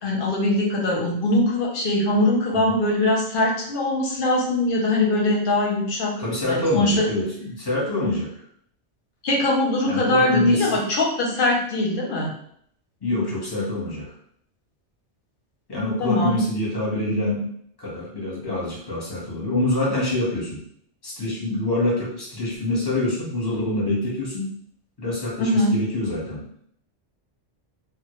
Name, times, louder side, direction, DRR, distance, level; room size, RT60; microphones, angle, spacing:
voice 1, 0.0-6.1 6.5-6.9 9.2-12.3 16.0-16.4 25.4-25.7, left 1 dB, 55° left, -1 dB, 0.7 m, -22 dB
voice 2, 6.2-8.4 9.9-10.8 13.0-14.1 15.7-17.5 17.8-20.6 21.0-24.5 25.0-26.5, left 1 dB, 25° left, -6 dB, 0.7 m, -25 dB
2.1 x 2.0 x 2.9 m, 0.67 s
omnidirectional pair, 1.2 m